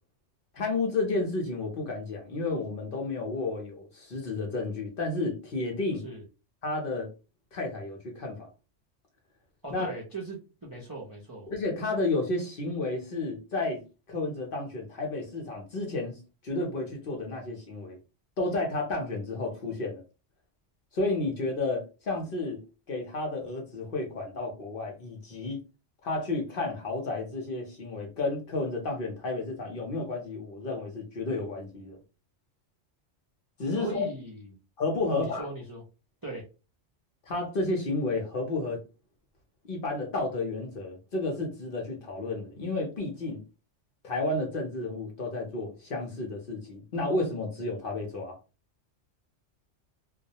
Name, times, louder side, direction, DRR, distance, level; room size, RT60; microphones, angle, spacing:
voice 1, 0.5-6.0 6.6-7.1 7.5-8.5 9.7-9.9 11.5-13.8 14.1-16.2 16.4-18.0 18.4-20.0 20.9-22.6 22.9-25.6 26.0-32.0 33.6-34.0 34.8-35.5 37.3-38.8 39.6-43.4 44.0-48.4, left 2 dB, 55° left, 0.8 m, -31 dB
voice 2, 9.6-11.5 33.7-34.5 35.0-35.8 36.2-36.5, right 2 dB, 30° right, 0.4 m, -39 dB
2.3 x 2.1 x 2.7 m
omnidirectional pair, 1.2 m